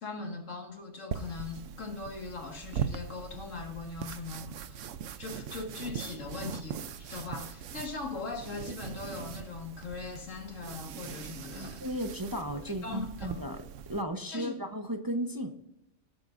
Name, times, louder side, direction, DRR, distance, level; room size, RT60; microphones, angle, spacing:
voice 1, 0.0-4.8 5.2-11.8 12.8-13.4 14.3-14.6, left 4 dB, 80° left, 2.2 m, -40 dB
sound 1, 1.1-14.0, right 8 dB, 75° right, 1.0 m, -41 dB
voice 2, 11.5-13.6 13.9-15.6, equal, 20° right, 0.8 m, -35 dB
18.0 x 9.1 x 2.6 m
omnidirectional pair, 1.3 m